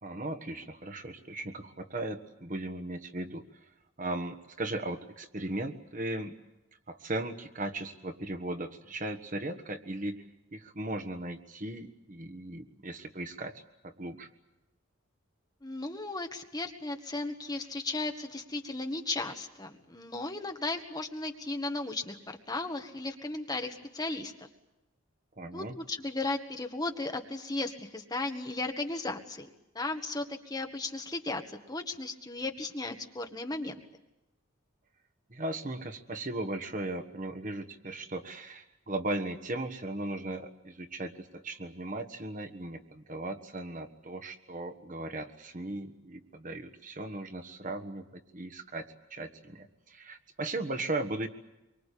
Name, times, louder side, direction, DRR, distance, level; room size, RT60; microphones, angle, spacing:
voice 1, 0.0-3.4 4.0-6.3 6.9-10.2 10.5-14.3 25.4-25.7 35.3-51.3, right 2 dB, 40° right, 7 dB, 1.5 m, -37 dB
voice 2, 15.6-24.5 25.5-29.5 29.7-33.8, left 2 dB, 20° left, 5 dB, 1.7 m, -35 dB
25.0 x 24.0 x 8.5 m, 0.96 s
head